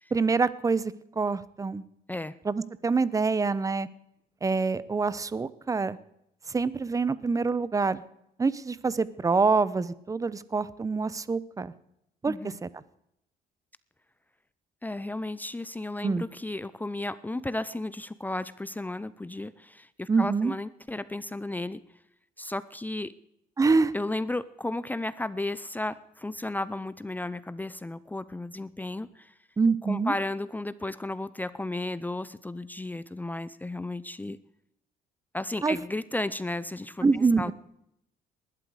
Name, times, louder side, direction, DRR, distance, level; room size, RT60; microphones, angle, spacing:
voice 1, 0.1-1.8 2.4-3.9 4.4-6.0 6.5-8.0 8.4-11.7 12.2-12.7 16.0-16.2 20.1-20.5 23.6-23.9 29.6-30.1 35.6-35.8 37.0-37.5, right 4 dB, 20° right, 18 dB, 0.8 m, -26 dB
voice 2, 14.8-21.8 22.4-23.1 23.9-29.3 29.8-34.4 35.3-37.5, left 2 dB, 10° left, 16 dB, 0.6 m, -34 dB
19.5 x 12.0 x 4.9 m, 0.77 s
cardioid pair, 110°, 17 cm